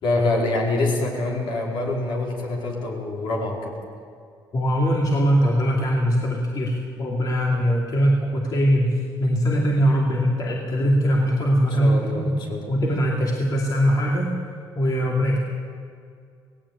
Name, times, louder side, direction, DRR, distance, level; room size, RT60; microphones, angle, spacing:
voice 1, 0.0-3.7 11.8-12.6, left 2 dB, 70° left, -1 dB, 4.5 m, -25 dB
voice 2, 4.5-12.4 12.7-14.3 14.8-15.4, equal, 45° left, -1 dB, 2.6 m, -21 dB
17.5 x 17.5 x 8.7 m, 2.3 s
cardioid pair, 90°, 9 cm